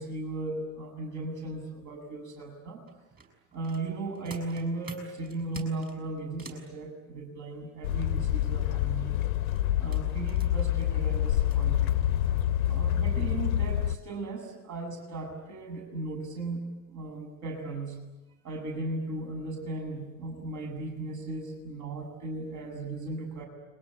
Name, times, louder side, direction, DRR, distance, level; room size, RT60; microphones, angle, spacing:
voice 1, 0.0-2.8 3.5-9.2 9.8-12.0 12.7-18.0 18.4-23.5, right 2 dB, 40° right, 2 dB, 7.4 m, -36 dB
sound 1, 2.9-6.7 9.2-11.6 12.3-12.4 12.9-13.1 13.5-13.8 14.1-14.2, right 4 dB, 20° right, 7.0 m, -48 dB
sound 2, 7.8-14.0, left 11 dB, 65° left, 1.1 m, -27 dB
29.5 x 23.0 x 8.6 m, 1.1 s
figure-of-eight pair, 75°, 44 cm